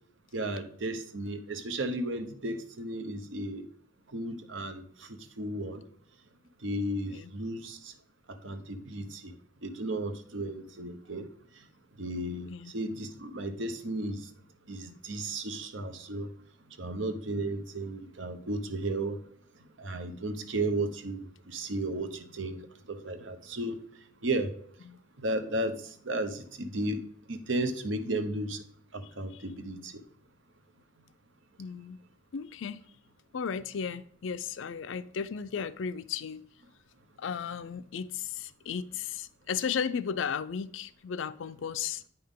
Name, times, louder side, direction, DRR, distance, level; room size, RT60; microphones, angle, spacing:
voice 1, 0.3-3.7 4.1-5.8 6.6-7.9 8.3-9.3 9.6-11.3 11.5-11.6 12.0-14.3 14.7-16.3 16.8-19.2 19.8-24.5 25.2-28.6 28.9-30.0, right 1 dB, 80° right, 0.9 m, -34 dB
voice 2, 31.6-32.0 32.3-32.8 33.3-36.5 37.2-42.0, left 7 dB, 80° left, 0.4 m, -35 dB
9.1 x 5.6 x 3.7 m
head